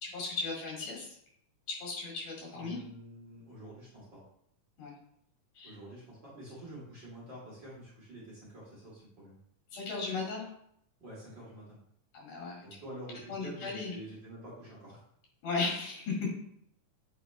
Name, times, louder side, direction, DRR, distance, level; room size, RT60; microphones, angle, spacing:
voice 1, 0.0-1.1 1.7-2.8 4.8-4.9 5.6-5.8 9.7-10.4 12.1-12.7 13.3-13.9 15.4-16.3, left 4 dB, 75° left, -3 dB, 3.8 m, -36 dB
voice 2, 2.5-4.2 5.6-9.4 11.0-11.8 12.6-15.0, right 1 dB, 40° right, -8 dB, 2.2 m, -48 dB
8.2 x 4.2 x 3.3 m, 0.69 s
omnidirectional pair, 3.8 m